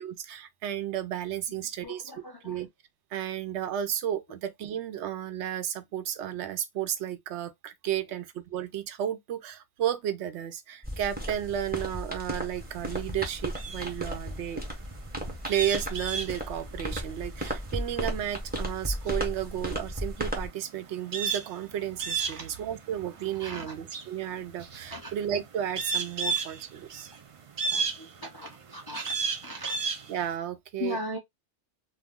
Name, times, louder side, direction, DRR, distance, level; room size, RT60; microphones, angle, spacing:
voice 1, 0.0-2.0 2.4-2.7 3.1-14.6 15.5-27.1 30.1-31.0, right 10 dB, 75° right, 0.8 m, -33 dB
voice 2, 1.5-2.6 22.3-22.5 23.4-23.8 24.9-25.1 26.3-26.4 27.7-29.2 29.4-29.8 30.8-31.2, left 1 dB, 30° left, 0.4 m, -39 dB
sound 1, 10.8-20.5, equal, 10° right, 0.7 m, -35 dB
sound 2, 12.6-30.3, right 5 dB, 60° right, 0.3 m, -35 dB
2.3 x 2.3 x 3.5 m
omnidirectional pair, 1.2 m